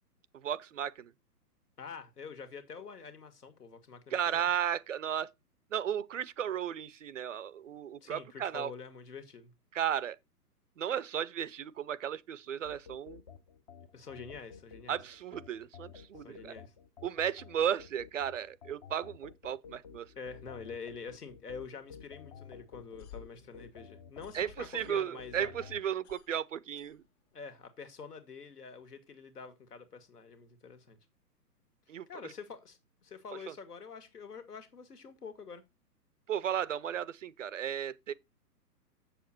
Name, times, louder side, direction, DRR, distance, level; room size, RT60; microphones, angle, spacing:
voice 1, 0.3-1.1 4.1-5.3 5.7-8.7 9.7-10.2 10.8-13.2 14.9-16.5 17.0-20.1 24.3-27.0 31.9-32.3 33.5-33.6 36.3-38.1, right 9 dB, 50° right, 0.6 m, -34 dB
voice 2, 1.8-4.5 8.0-9.5 13.9-15.0 16.2-16.7 20.2-25.5 27.3-31.0 32.1-35.6, left 5 dB, 70° left, 2.0 m, -46 dB
sound 1, 12.6-25.8, left 6 dB, 25° left, 0.6 m, -52 dB
sound 2, 22.8-25.3 25.6-27.5, left 9 dB, 45° left, 1.7 m, -55 dB
7.6 x 6.7 x 4.2 m
figure-of-eight pair, 125°, 48 cm